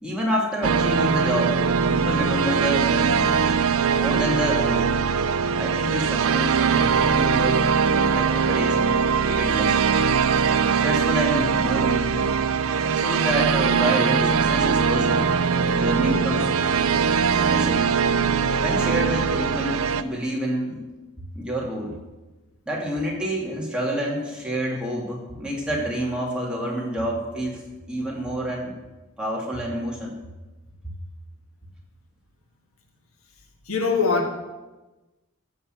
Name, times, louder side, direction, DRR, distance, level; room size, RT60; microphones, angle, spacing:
voice 1, 0.0-1.6 1.8-3.3 3.9-4.9 5.6-7.6 7.9-9.0 9.2-9.8 10.7-12.3 12.8-15.3 15.6-16.5 16.8-17.0 17.5-17.8 18.6-20.8 21.3-21.9 22.7-27.6 27.9-28.7 29.2-30.1 30.8-30.9, equal, 5° right, -4 dB, 2.7 m, -28 dB
sound 1, 0.6-20.0, right 6 dB, 70° right, 0.6 m, -21 dB
voice 2, 33.7-34.3, left 4 dB, 75° left, 3 dB, 1.7 m, -22 dB
14.5 x 5.6 x 8.0 m, 1.1 s
head